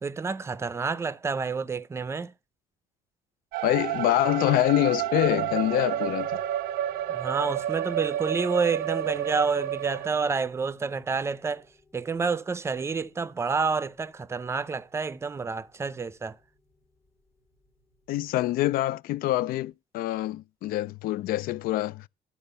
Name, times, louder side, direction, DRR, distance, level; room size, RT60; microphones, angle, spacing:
voice 1, 0.0-2.3 7.1-11.6 11.9-16.4, right 5 dB, 15° right, 0.5 m, -29 dB
sound 1, 3.5-10.1, right 12 dB, 80° right, 0.6 m, -30 dB
voice 2, 3.6-6.4 18.1-22.1, left 15 dB, 65° left, 0.4 m, -25 dB
sound 2, 3.7-18.4, left 3 dB, 40° left, 1.5 m, -52 dB
11.5 x 4.3 x 6.7 m
cardioid pair, 130°, 16 cm